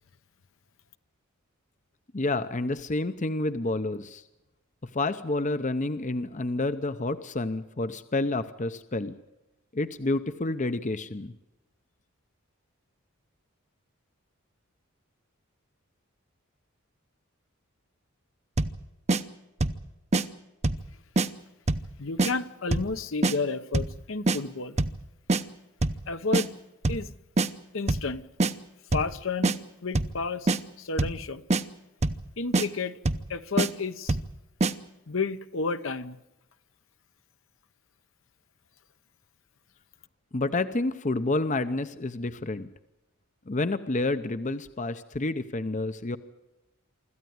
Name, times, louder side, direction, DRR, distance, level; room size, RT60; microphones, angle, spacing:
voice 1, 2.1-4.2 4.9-9.1 9.7-11.3 40.3-42.7 43.5-46.2, left 2 dB, 35° left, 0.7 m, -29 dB
sound 1, 18.6-18.8 19.1-19.2 19.6-19.8 20.1-20.2 20.6-20.9 21.2-21.3 21.7-21.9 22.2-22.3 22.7-22.9 23.2-23.4 23.7-24.0 24.3-24.4 24.8-25.0 25.3-25.4 25.8-26.0 26.3-26.5 26.8-27.1 27.4-27.5 27.9-28.1 28.4-28.5 28.9-29.1 29.4-29.6 29.9-30.2 30.5-30.6 31.0-31.2 31.5-31.6 32.0-32.2 32.5-32.7 33.1-33.3 33.6-33.7 34.1-34.3 34.6-34.7, right 2 dB, 30° right, 0.8 m, -24 dB
voice 2, 22.0-24.8 26.1-26.5 26.9-27.1 27.7-28.2 28.9-29.5 29.8-31.4 32.4-33.0 33.3-34.2 35.1-36.2, left 4 dB, 60° left, 0.9 m, -31 dB
25.0 x 14.0 x 9.5 m
head